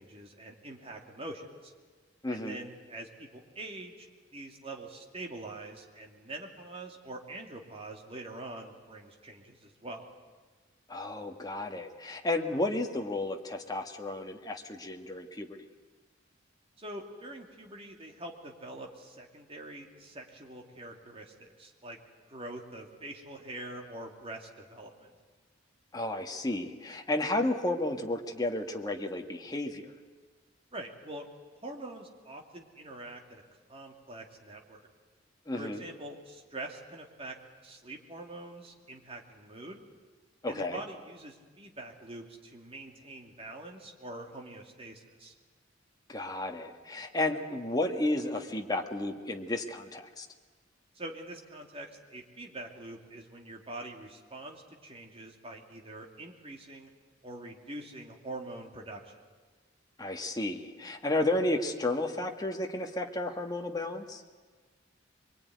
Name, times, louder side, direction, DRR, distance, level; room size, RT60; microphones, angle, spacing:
voice 1, 0.0-1.7 2.3-4.1 4.3-10.1 16.8-22.0 22.3-25.1 30.7-31.3 31.6-33.4 33.7-34.9 35.5-37.4 37.6-39.8 40.5-45.3 50.9-56.9 57.2-59.2, right 2 dB, 30° right, 2 dB, 2.7 m, -44 dB
voice 2, 2.2-2.6 10.9-15.6 25.9-29.9 35.5-35.8 40.4-40.8 46.1-50.3 60.0-64.2, left 2 dB, 20° left, 3 dB, 1.7 m, -32 dB
23.5 x 22.5 x 9.5 m, 1.4 s
head